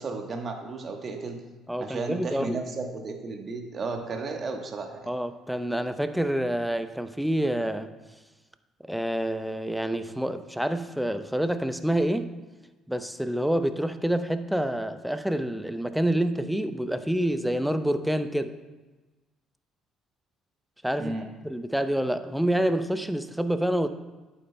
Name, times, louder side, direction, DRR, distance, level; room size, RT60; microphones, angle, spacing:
voice 1, 0.0-1.4 1.8-5.1 21.0-21.3, right 3 dB, 45° right, 3 dB, 1.2 m, -34 dB
voice 2, 1.7-2.6 5.1-7.9 8.9-12.3 12.9-18.6 20.8-21.1 21.4-23.9, right 1 dB, 5° right, 10 dB, 0.7 m, -27 dB
11.5 x 8.6 x 2.2 m, 1.2 s
hypercardioid pair, 55°, 0 cm